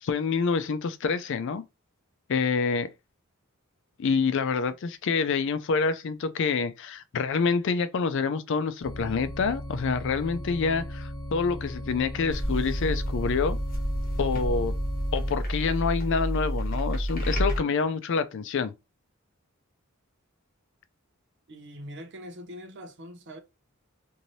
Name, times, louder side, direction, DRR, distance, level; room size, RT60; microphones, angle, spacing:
voice 1, 0.0-1.6 2.3-2.9 4.0-13.6 14.2-14.7 15.1-18.7, left 5 dB, 60° left, 0.4 m, -27 dB
sound 1, 8.8-15.3, equal, 25° left, 1.5 m, -37 dB
sound 2, 12.3-17.6, equal, 40° left, 1.1 m, -29 dB
voice 2, 21.5-23.4, equal, 55° right, 0.7 m, -42 dB
3.1 x 2.7 x 2.6 m
head